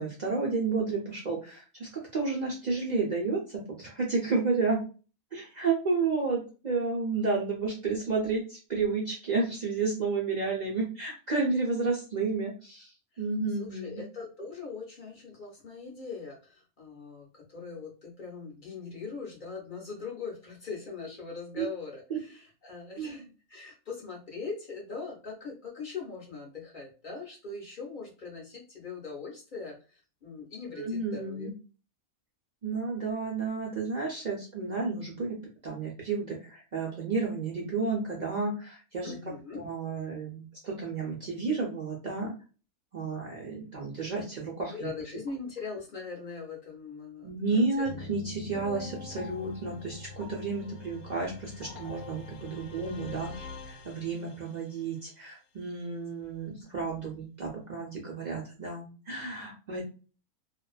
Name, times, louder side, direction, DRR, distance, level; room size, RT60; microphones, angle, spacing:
voice 1, 0.0-4.8 5.3-12.9 13.2-14.0 21.6-21.7 22.1-22.2 23.0-23.1 30.8-31.5 32.6-35.4 35.6-39.2 39.5-42.3 42.9-44.9 47.2-59.8, right 4 dB, 60° right, -2 dB, 0.4 m, -31 dB
voice 2, 13.6-23.2 23.5-31.5 39.0-39.6 44.7-47.6, left 4 dB, 50° left, -1 dB, 0.6 m, -41 dB
sound 1, 47.8-54.6, left 4 dB, 80° left, 1.1 m, -44 dB
2.5 x 2.2 x 2.3 m, 0.34 s
omnidirectional pair, 1.5 m